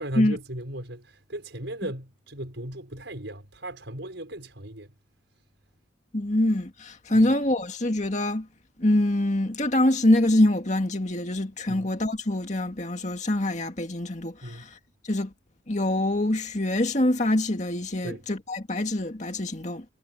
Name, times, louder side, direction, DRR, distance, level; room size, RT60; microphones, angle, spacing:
voice 1, 0.0-4.9 7.1-7.2 11.7-11.9 14.4-14.7 18.0-18.2, right 1 dB, 75° right, 5.4 m, -36 dB
voice 2, 6.1-8.5 8.8-14.8 15.1-15.3 15.7-19.8, left 1 dB, 40° left, 2.1 m, -24 dB
head